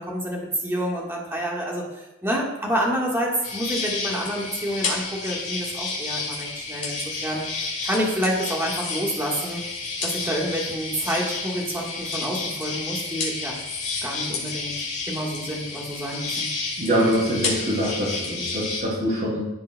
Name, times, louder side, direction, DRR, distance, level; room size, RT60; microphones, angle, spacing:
voice 1, 0.0-7.5 7.8-9.6 10.0-13.6 14.0-16.5, equal, 10° right, -3 dB, 1.4 m, -28 dB
sound 1, 3.4-18.8, left 4 dB, 35° left, 2.7 m, -31 dB
voice 2, 16.8-19.4, equal, 40° right, -9 dB, 2.4 m, -24 dB
14.0 x 5.2 x 2.2 m, 0.97 s
head